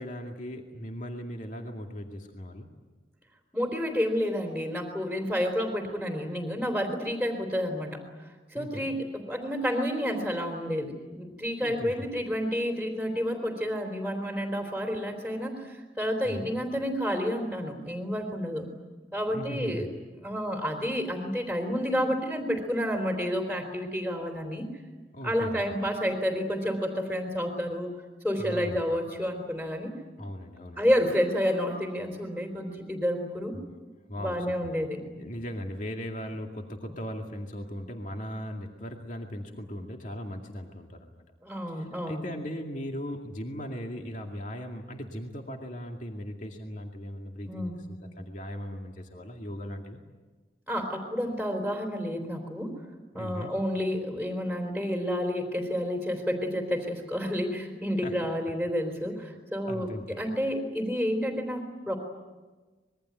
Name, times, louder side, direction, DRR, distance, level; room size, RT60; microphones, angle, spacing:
voice 1, 0.0-2.7 8.5-8.9 11.6-11.9 16.2-16.5 19.3-19.9 25.1-25.6 28.4-28.8 30.2-30.8 33.5-33.6 34.1-34.8 35.1-41.2 41.7-50.0 53.1-53.5 58.0-58.1 59.6-60.2, equal, 45° left, 2 dB, 2.3 m, -38 dB
voice 2, 3.5-8.0 8.5-18.7 19.1-19.9 20.2-24.7 25.2-27.9 28.2-29.9 30.8-33.5 34.2-35.0 41.4-42.2 47.5-47.8 50.7-52.8 53.1-62.0, equal, ahead, 2 dB, 3.4 m, -30 dB
25.5 x 22.0 x 9.3 m, 1.3 s
head